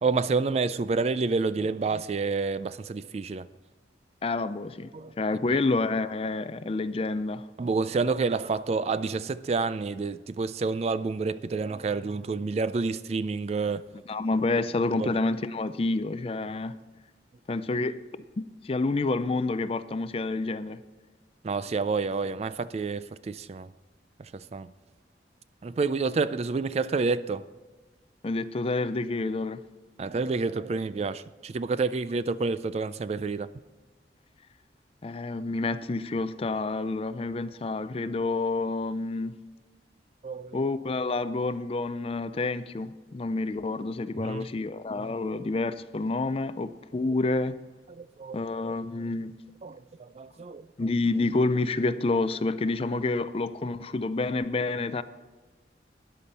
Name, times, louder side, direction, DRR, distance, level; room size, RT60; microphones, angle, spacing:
voice 1, 0.0-3.5 4.9-5.1 7.6-13.8 15.0-15.1 21.4-23.7 24.3-24.7 25.6-27.4 30.0-33.5 40.2-40.6 44.2-44.4 47.9-48.4 49.6-50.7, right 4 dB, 35° right, 0.3 m, -29 dB
voice 2, 4.2-4.9 5.2-7.4 14.1-16.8 17.5-18.0 18.4-20.8 28.2-29.7 35.0-39.4 40.5-47.5 48.3-49.4 50.8-55.0, left 3 dB, 35° left, 0.4 m, -28 dB
13.0 x 10.5 x 4.2 m
head